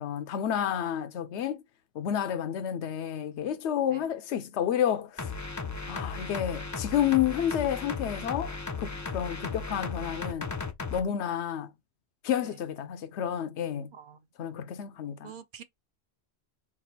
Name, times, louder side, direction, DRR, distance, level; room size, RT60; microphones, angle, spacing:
voice 1, 0.0-1.6 1.9-5.3 5.9-10.5 10.9-11.7 12.2-13.9 14.4-15.3, left 10 dB, 85° left, 0.9 m, -30 dB
sound 1, 5.2-11.0, left 4 dB, 25° left, 0.4 m, -36 dB
voice 2, 13.9-14.5 15.2-15.6, right 8 dB, 60° right, 0.6 m, -48 dB
3.7 x 2.4 x 4.1 m
omnidirectional pair, 1.1 m